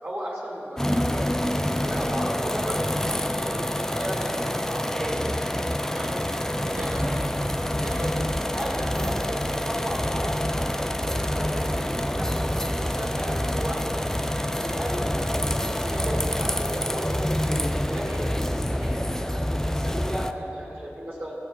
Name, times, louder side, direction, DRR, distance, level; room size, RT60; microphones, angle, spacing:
voice 1, 0.0-2.9 3.4-4.3 4.7-5.2 5.9-6.2 6.6-7.4 7.8-8.2 8.5-10.4 11.0-14.1 14.4-17.2 17.8-21.3, equal, 50° right, -6 dB, 2.2 m, -35 dB
sound 1, 0.8-20.3, left 1 dB, 10° left, 0.4 m, -27 dB
17.0 x 6.2 x 4.5 m, 3.0 s
wide cardioid pair, 60°, 5 cm